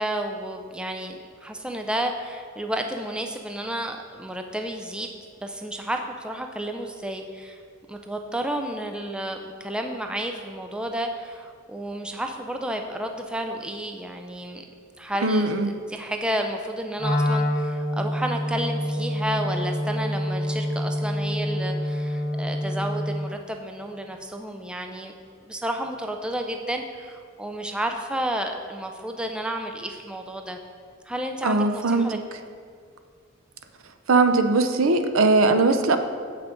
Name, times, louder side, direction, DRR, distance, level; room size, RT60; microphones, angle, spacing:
voice 1, 0.0-5.1 5.4-7.6 7.9-14.6 15.0-25.1 25.4-30.6 31.1-32.2, right 1 dB, 5° right, 4 dB, 0.3 m, -31 dB
voice 2, 15.2-15.7 31.4-32.2 34.1-36.0, right 3 dB, 75° right, 8 dB, 0.6 m, -20 dB
Wind instrument woodwind instrument, 17.0-23.3, equal, 30° left, 1.4 m, -27 dB
7.5 x 5.9 x 5.0 m, 2.1 s
head